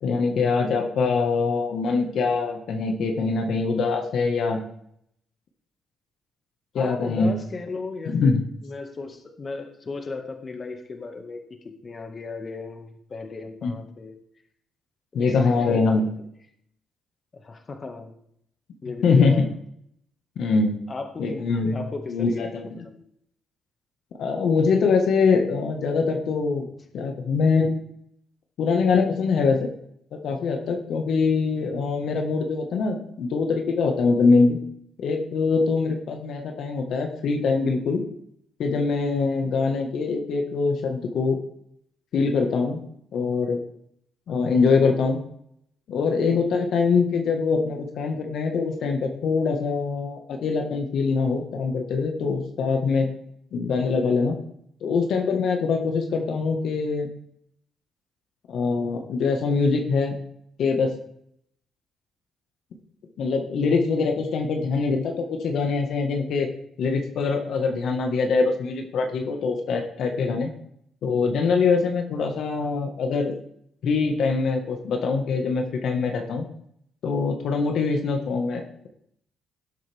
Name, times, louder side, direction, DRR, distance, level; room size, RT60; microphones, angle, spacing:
voice 1, 0.0-4.6 6.7-7.3 8.0-8.4 13.6-13.7 15.1-16.1 19.0-19.5 20.3-20.8 21.2-21.8 22.1-22.8 24.2-26.6 26.9-27.7 28.6-29.7 30.1-34.6 35.0-38.0 38.6-41.4 42.1-42.8 43.1-43.6 44.3-45.2 45.9-53.1 53.5-54.3 54.8-57.1 58.5-60.1 60.6-60.9 63.2-66.5 66.8-70.5 71.0-73.3 73.8-76.4 77.0-78.9, left 4 dB, 70° left, 3 dB, 1.6 m, -23 dB
voice 2, 6.8-8.3 8.6-11.4 11.8-14.2 15.1-15.8 17.3-18.1 18.8-19.5 20.9-23.0 27.1-27.2, left 3 dB, 35° left, 4 dB, 1.9 m, -36 dB
18.0 x 7.7 x 3.6 m, 0.71 s
cardioid pair, 90°, 0 cm